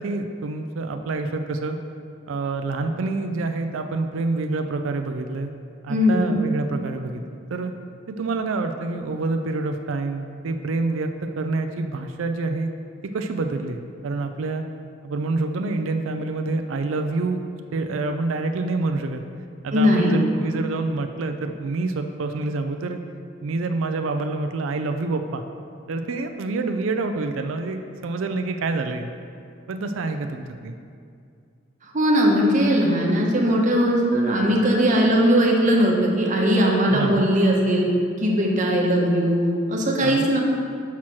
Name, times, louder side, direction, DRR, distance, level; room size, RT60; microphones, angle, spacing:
voice 1, 0.0-1.8 2.3-5.5 5.8-7.7 8.1-12.7 13.1-14.6 15.0-17.4 17.7-19.2 19.6-23.0 23.4-25.4 25.9-29.1 29.7-30.8 36.9-37.3 40.0-40.2, right 3 dB, 75° right, 6 dB, 0.4 m, -27 dB
voice 2, 5.9-6.3 19.7-20.2 31.8-37.9 38.2-39.4 39.7-40.4, equal, 40° right, -1 dB, 1.0 m, -19 dB
6.0 x 4.3 x 6.1 m, 2.4 s
head